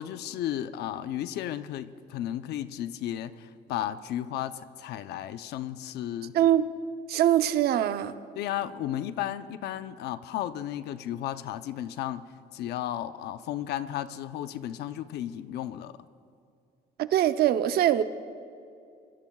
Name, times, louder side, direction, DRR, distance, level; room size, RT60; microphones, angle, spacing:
voice 1, 0.0-6.4 8.3-12.2 12.5-16.0, left 11 dB, 75° left, 12 dB, 0.7 m, -34 dB
voice 2, 6.3-6.7 7.1-8.1 17.0-18.0, right 11 dB, 70° right, 11 dB, 0.7 m, -23 dB
25.5 x 22.0 x 2.4 m, 2.4 s
cardioid pair, 110°, 17 cm